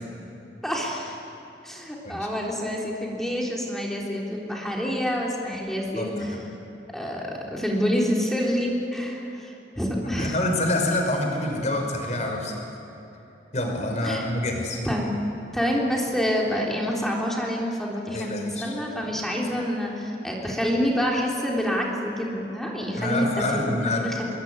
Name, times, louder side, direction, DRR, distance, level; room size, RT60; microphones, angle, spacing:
voice 1, 0.6-1.2 1.6-6.4 6.9-10.4 14.0-14.3 14.8-15.1 15.5-23.3 23.6-24.3, equal, ahead, -3 dB, 3.7 m, -27 dB
voice 2, 6.0-6.4 10.2-12.6 13.5-14.8 18.1-18.7 23.0-24.0, left 1 dB, 40° left, 2 dB, 5.5 m, -27 dB
27.5 x 21.5 x 9.7 m, 3.0 s
head